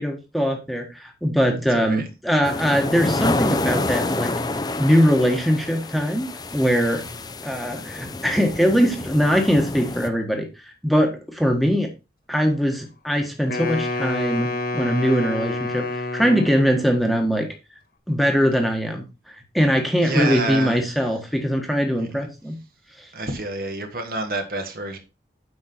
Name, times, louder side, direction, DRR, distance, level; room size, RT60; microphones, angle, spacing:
voice 1, 0.0-4.3 4.8-6.3 6.5-7.0 7.4-10.5 10.8-11.9 12.3-14.5 14.7-17.5 18.1-22.6, equal, ahead, 1.4 m, -21 dB
voice 2, 1.7-2.1 7.0-7.3 20.0-20.9 22.0-22.1 23.1-25.0, right 2 dB, 55° right, 1.7 m, -28 dB
sound 1, 2.4-10.1, left 2 dB, 25° left, 0.6 m, -28 dB
Wind instrument woodwind instrument, 13.5-17.0, left 2 dB, 55° left, 1.7 m, -28 dB
8.7 x 5.6 x 4.4 m
head